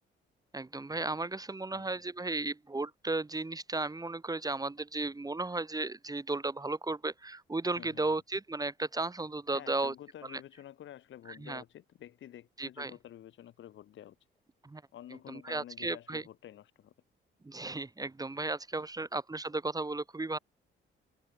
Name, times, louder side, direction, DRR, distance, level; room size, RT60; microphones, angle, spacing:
voice 1, 0.5-9.9 10.3-10.4 11.3-11.6 12.6-12.9 14.6-14.8 15.3-16.2 17.4-20.4, right 2 dB, 20° right, 2.6 m, -35 dB
voice 2, 7.8-8.2 9.5-14.2 14.9-16.9, left 11 dB, 75° left, 7.4 m, -50 dB
cardioid pair, 90°, 20 cm